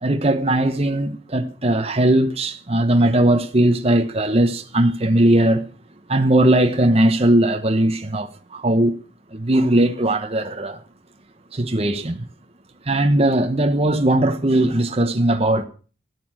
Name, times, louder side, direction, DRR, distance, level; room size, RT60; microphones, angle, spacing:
voice 1, 0.0-5.6 6.1-8.9 9.3-10.8 11.5-12.2 12.9-15.6, right 1 dB, 30° right, 1.1 m, -19 dB
13.5 x 11.0 x 6.3 m
head